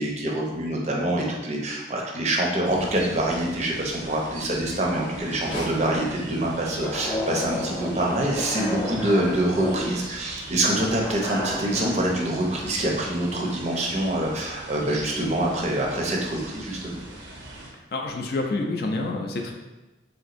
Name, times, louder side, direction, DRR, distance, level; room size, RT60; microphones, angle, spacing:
voice 1, 0.0-17.0, right 1 dB, 35° right, -1 dB, 0.5 m, -25 dB
sound 1, 2.6-17.7, right 1 dB, 90° right, 0.6 m, -41 dB
sound 2, 5.2-11.3, left 1 dB, 80° left, 0.7 m, -43 dB
sound 3, 6.8-12.0, left 1 dB, 25° left, 0.7 m, -32 dB
voice 2, 17.9-19.5, left 2 dB, 55° left, 2 dB, 0.4 m, -28 dB
3.4 x 2.8 x 2.5 m, 1.1 s
head